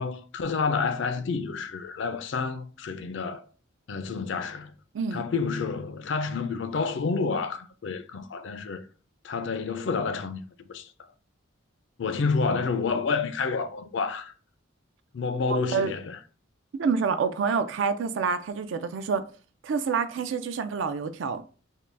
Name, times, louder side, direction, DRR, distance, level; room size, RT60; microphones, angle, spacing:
voice 1, 0.0-3.4 3.9-4.7 5.1-8.8 9.2-10.4 10.7-10.9 12.0-14.3 15.1-16.2, left 4 dB, 65° left, 0.4 m, -29 dB
voice 2, 4.9-5.3 15.7-15.9 16.7-19.3 19.6-21.4, right 5 dB, 70° right, 0.4 m, -27 dB
3.7 x 2.2 x 3.3 m
head